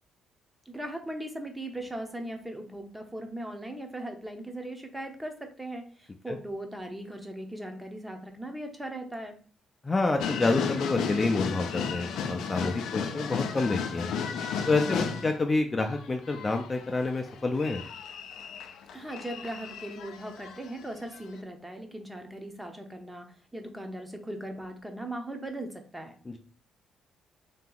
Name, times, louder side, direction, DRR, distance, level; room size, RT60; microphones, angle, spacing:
voice 1, 0.7-9.4 18.9-26.1, right 1 dB, 10° right, 4 dB, 0.8 m, -39 dB
voice 2, 9.8-14.1 14.7-17.8 26.3-26.4, left 3 dB, 25° left, 4 dB, 0.4 m, -28 dB
sound 1, 10.2-15.4 15.8-20.9 21.1-21.2, left 6 dB, 80° left, 0.5 m, -34 dB
3.4 x 2.9 x 3.9 m, 0.43 s
cardioid pair, 90°, 0 cm